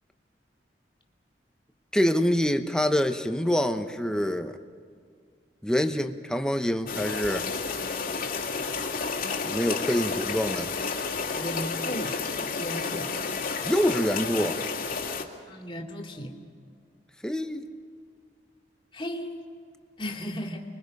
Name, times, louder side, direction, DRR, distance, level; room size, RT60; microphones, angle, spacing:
voice 1, 1.9-4.6 5.6-7.5 9.4-10.7 13.6-14.6 17.2-17.6, equal, 5° left, 7 dB, 1.0 m, -26 dB
sound 1, 6.9-15.2, left 5 dB, 55° left, 2.2 m, -31 dB
voice 2, 11.3-12.1 12.6-13.1 15.5-16.3 18.9-19.5 20.0-20.6, equal, 30° left, 1 dB, 2.6 m, -35 dB
30.0 x 22.5 x 5.4 m, 2.1 s
head